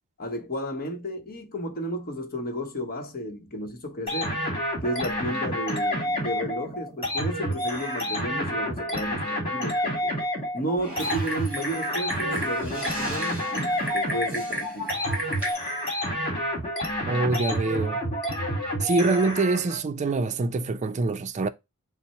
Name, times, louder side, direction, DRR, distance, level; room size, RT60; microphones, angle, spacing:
voice 1, 0.2-4.4 4.8-10.1 10.5-15.0, equal, 45° left, 0.9 m, -33 dB
sound 1, 4.1-19.8, equal, 25° left, 1.9 m, -29 dB
Typing, 10.8-15.5, right 1 dB, 5° right, 2.0 m, -34 dB
voice 2, 17.1-18.0 18.8-21.5, right 3 dB, 30° right, 0.4 m, -25 dB
5.8 x 2.0 x 4.3 m
head